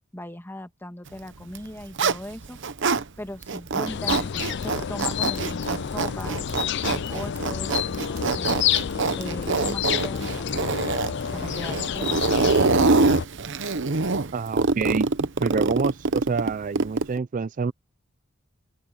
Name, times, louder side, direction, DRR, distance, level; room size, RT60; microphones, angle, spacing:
voice 1, 0.1-2.6 3.2-6.4 6.8-8.6 9.2-10.9 11.3-12.7, left 1 dB, 10° left, 1.9 m, -38 dB
Zipper (clothing), 1.4-3.0 3.4-17.2, right 3 dB, 60° right, 0.9 m, -25 dB
sound 1, 3.9-13.2, left 8 dB, 55° left, 0.4 m, -29 dB
voice 2, 14.3-15.1 15.4-17.7, right 5 dB, 40° right, 0.4 m, -27 dB
open air
head